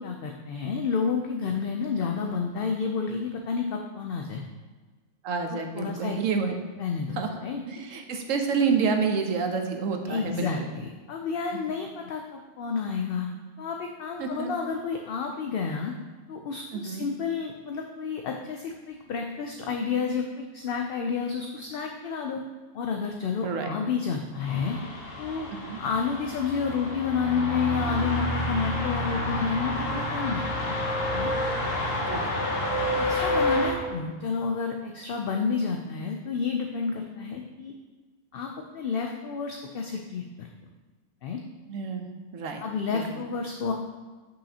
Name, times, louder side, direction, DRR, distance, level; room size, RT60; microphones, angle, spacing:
voice 1, 0.0-4.4 5.5-6.2 6.8-7.6 10.1-13.3 13.6-15.9 16.3-22.4 22.7-24.8 25.2-25.5 25.8-30.8 31.1-31.3 32.0-32.2 33.0-37.7 38.3-40.5 41.2-41.4 42.6-43.7, left 5 dB, 60° left, 3 dB, 0.6 m, -30 dB
voice 2, 5.2-6.5 7.2-10.6 14.2-14.5 16.7-17.1 23.4-23.8 25.6-25.8 32.1-32.3 41.7-42.6 42.9-43.2, right 5 dB, 80° right, 4 dB, 1.2 m, -29 dB
sound 1, 24.4-33.7, left 1 dB, 80° left, 1.5 m, -29 dB
8.6 x 5.7 x 2.8 m, 1.4 s
omnidirectional pair, 1.3 m